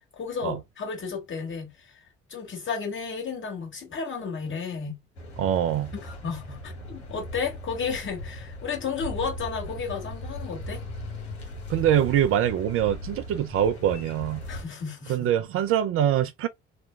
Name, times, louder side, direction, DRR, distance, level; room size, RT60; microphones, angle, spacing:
voice 1, 0.1-1.9 2.3-4.9 5.9-10.8 14.5-15.3, left 5 dB, 40° left, 1.8 m, -33 dB
sound 1, 5.2-14.7, left 1 dB, 80° left, 1.0 m, -38 dB
voice 2, 5.4-5.9 11.7-14.4 15.1-16.5, right 10 dB, 45° right, 0.4 m, -24 dB
3.0 x 2.2 x 3.2 m
figure-of-eight pair, 50°, 32 cm